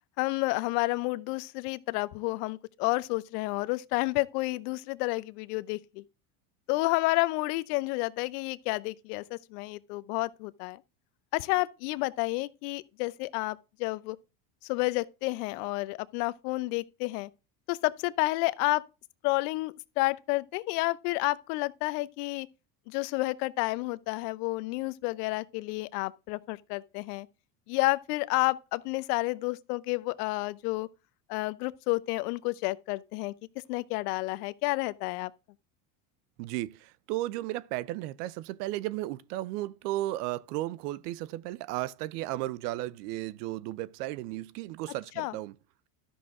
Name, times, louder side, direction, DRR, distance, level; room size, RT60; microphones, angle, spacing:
voice 1, 0.2-6.0 6.7-10.8 11.3-14.2 14.6-17.3 17.7-18.8 19.2-22.5 22.9-27.3 27.7-30.9 31.3-33.3 33.7-35.3 45.2-45.4, left 22 dB, 75° left, 0.8 m, -30 dB
voice 2, 36.4-45.5, right 16 dB, 80° right, 0.7 m, -34 dB
12.5 x 6.1 x 3.6 m
supercardioid pair, 110°, 46 cm